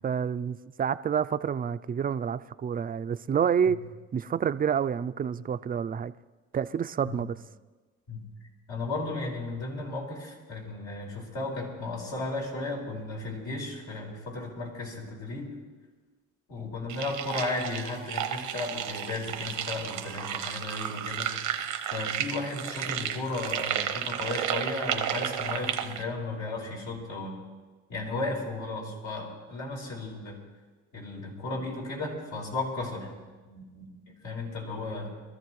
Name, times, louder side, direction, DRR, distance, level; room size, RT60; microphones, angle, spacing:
voice 1, 0.0-3.8 4.1-6.1 6.5-7.4, right 7 dB, 30° right, 0.4 m, -28 dB
voice 2, 8.7-15.5 16.5-21.3 21.9-27.4 27.9-30.4 30.9-33.1 33.4-35.1, left 2 dB, 80° left, 4.5 m, -35 dB
sound 1, 16.9-26.0, right 10 dB, 90° right, 0.9 m, -32 dB
23.0 x 14.0 x 3.2 m
cardioid pair, 90°, 30 cm